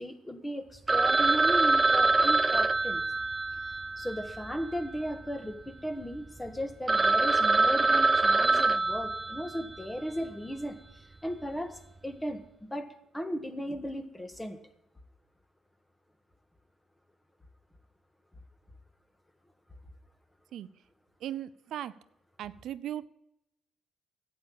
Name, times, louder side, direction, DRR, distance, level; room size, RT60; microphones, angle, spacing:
voice 1, 0.0-3.0 4.0-12.4 12.7-14.6, equal, 10° left, 9 dB, 1.6 m, -36 dB
Telephone, 0.9-5.2 5.5-5.6 6.1-6.2 6.6-6.7 6.9-9.8, right 3 dB, 20° right, 0.6 m, -25 dB
voice 2, 21.2-21.9 22.4-23.1, right 11 dB, 75° right, 14 dB, 0.5 m, -37 dB
11.0 x 8.6 x 8.7 m, 0.82 s
cardioid pair, 90°, 0 cm